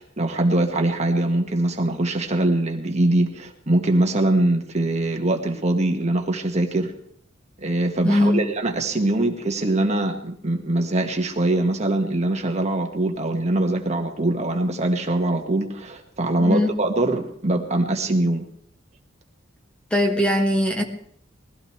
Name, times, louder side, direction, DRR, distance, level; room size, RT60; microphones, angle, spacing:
voice 1, 0.0-6.9 7.6-18.4, right 1 dB, 35° right, 1.8 m, -22 dB
voice 2, 8.0-8.4 16.4-16.7 19.9-20.8, left 1 dB, 5° left, 1.7 m, -20 dB
21.5 x 16.0 x 3.4 m
head